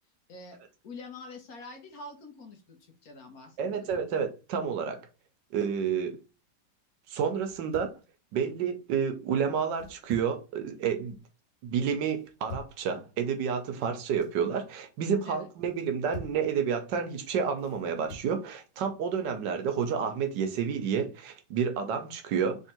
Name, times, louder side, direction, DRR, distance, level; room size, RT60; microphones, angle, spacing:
voice 1, 0.8-4.0 15.2-15.5, left 3 dB, 60° left, 1.3 m, -46 dB
sound 1, 3.6-4.2 5.5-6.1 7.4-8.0 9.7-10.4 10.8-11.3 12.1-12.8 13.9-14.4 15.7-16.5 17.6-18.3, left 1 dB, 75° left, 2.0 m, -47 dB
voice 2, 3.6-5.0 5.5-6.2 7.1-7.9 8.3-11.2 11.6-22.6, right 7 dB, 75° right, 1.4 m, -30 dB
3.5 x 3.3 x 4.3 m
omnidirectional pair, 2.0 m